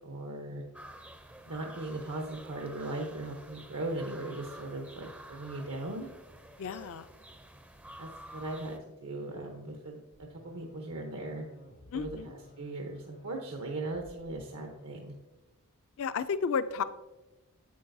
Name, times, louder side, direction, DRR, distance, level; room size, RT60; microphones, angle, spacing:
voice 1, 0.0-0.6 1.5-6.1 8.0-11.5 11.9-15.1, right 2 dB, 80° right, 2 dB, 0.9 m, -38 dB
sound 1, 0.7-8.8, right 1 dB, 5° right, 0.4 m, -50 dB
voice 2, 6.6-7.1 11.9-12.3 16.0-16.8, left 6 dB, 65° left, 13 dB, 0.4 m, -32 dB
sound 2, 10.1-15.0, left 1 dB, 85° left, 1.1 m, -54 dB
8.6 x 7.9 x 2.6 m, 1.0 s
head